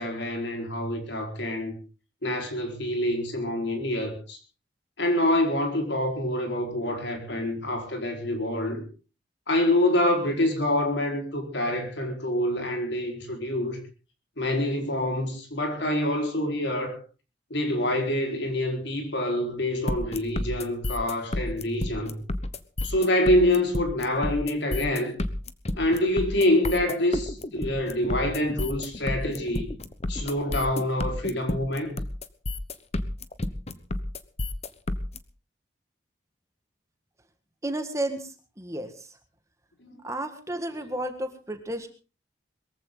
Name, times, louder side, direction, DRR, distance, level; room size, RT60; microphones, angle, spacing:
voice 1, 0.0-1.7 2.2-4.4 5.0-8.8 9.5-13.8 14.4-17.0 17.5-22.2 22.8-25.2 25.7-29.7 30.1-31.9 39.8-40.0, left 1 dB, 70° left, 4.6 m, -26 dB
sound 1, 19.9-35.2, left 1 dB, 35° left, 1.0 m, -30 dB
voice 2, 37.6-39.1 40.0-41.9, right 1 dB, 15° right, 1.7 m, -32 dB
22.0 x 15.0 x 3.9 m
head